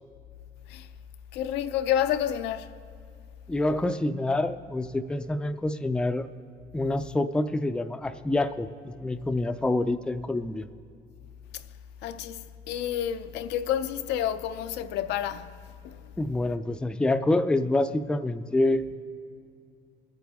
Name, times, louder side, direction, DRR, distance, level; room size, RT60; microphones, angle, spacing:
voice 1, 1.3-2.7 11.5-11.6 12.0-16.1, left 10 dB, 85° left, 0.5 m, -30 dB
voice 2, 3.5-6.3 6.7-10.7 16.2-18.9, left 2 dB, 5° left, 0.4 m, -27 dB
21.5 x 9.0 x 3.6 m
cardioid pair, 110°, 17 cm